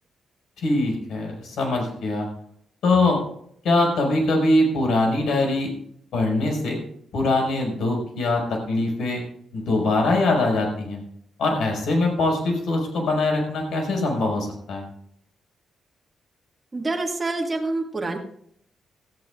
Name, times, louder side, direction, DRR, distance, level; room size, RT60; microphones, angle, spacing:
voice 1, 0.6-2.3 2.8-3.2 3.6-5.7 6.1-6.8 7.1-9.2 9.5-11.0 11.4-14.8, left 2 dB, 75° left, 0 dB, 5.4 m, -22 dB
voice 2, 16.7-18.2, right 2 dB, 20° right, 0 dB, 1.8 m, -26 dB
18.0 x 14.5 x 2.5 m, 0.68 s
wide cardioid pair, 160°, 0 cm